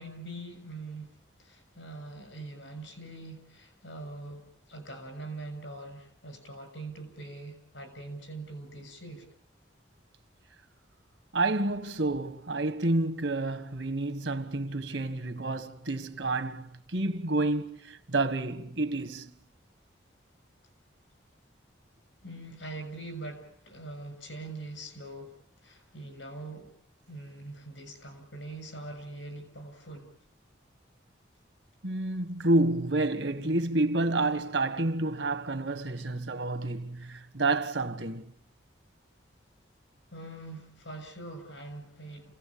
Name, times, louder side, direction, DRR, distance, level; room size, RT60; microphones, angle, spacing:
voice 1, 0.0-9.3 22.2-26.7 27.1-30.1 40.1-42.3, right 2 dB, 90° left, 7.0 m, -43 dB
voice 2, 11.3-19.3 31.8-38.3, right 2 dB, 85° right, 1.6 m, -29 dB
29.0 x 17.5 x 8.6 m
head